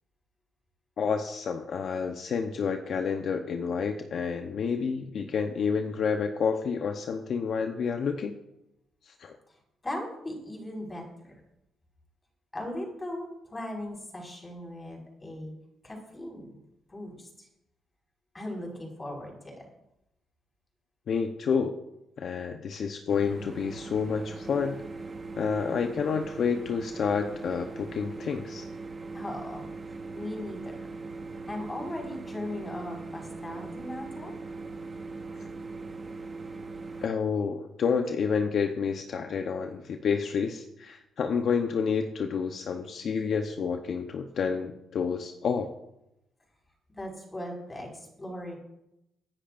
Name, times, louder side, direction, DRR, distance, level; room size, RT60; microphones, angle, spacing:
voice 1, 1.0-8.4 9.0-9.4 21.1-21.7 22.2-24.8 25.4-28.7 37.0-45.7, left 6 dB, 60° left, 5 dB, 0.9 m, -29 dB
voice 2, 9.8-11.4 12.5-15.5 15.8-16.6 16.9-17.5 18.3-19.7 29.1-30.9 31.5-34.3 46.9-48.6, left 1 dB, 20° left, 0 dB, 5.4 m, -38 dB
sound 1, 23.1-37.1, right 3 dB, 30° right, 1.4 m, -40 dB
23.5 x 9.9 x 2.6 m, 0.85 s
cardioid pair, 90°, 0 cm